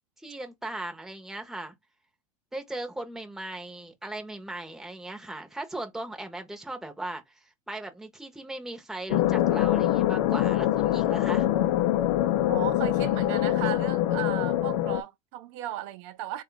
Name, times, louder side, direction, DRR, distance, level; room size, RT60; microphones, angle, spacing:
voice 1, 0.2-1.7 2.5-11.5, right 2 dB, ahead, 0.8 m, -38 dB
sound 1, 9.1-15.0, left 13 dB, 65° left, 0.5 m, -24 dB
voice 2, 12.5-16.4, right 12 dB, 60° right, 0.6 m, -36 dB
3.6 x 2.3 x 3.9 m
supercardioid pair, 125°, 17 cm